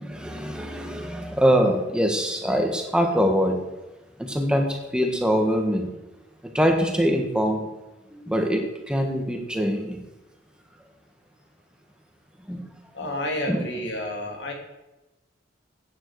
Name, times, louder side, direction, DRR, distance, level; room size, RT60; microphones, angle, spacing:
voice 1, 0.0-3.6 4.2-5.9 6.4-7.7 8.1-10.0 12.5-12.6 13.5-13.6, equal, 5° right, 3 dB, 1.6 m, -23 dB
voice 2, 12.9-14.5, left 1 dB, 65° left, 1 dB, 2.8 m, -30 dB
15.0 x 9.4 x 4.8 m, 1.0 s
head